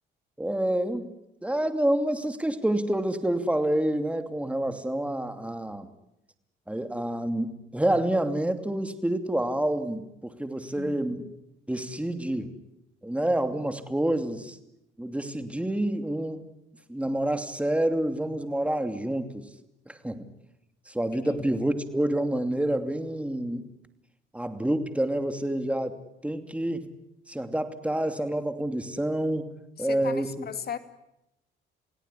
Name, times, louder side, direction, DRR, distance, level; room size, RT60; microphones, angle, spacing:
voice 1, 0.4-1.1 1.4-5.9 6.7-11.3 11.7-12.5 13.0-14.6 15.0-16.5 16.9-19.5 19.9-20.3 20.9-23.7 24.3-26.0 26.2-26.9 27.3-29.5 29.8-30.5, right 1 dB, 5° right, 2.8 m, -28 dB
voice 2, 29.8-30.8, left 8 dB, 50° left, 2.6 m, -37 dB
28.5 x 17.5 x 9.9 m
cardioid pair, 90°, 20 cm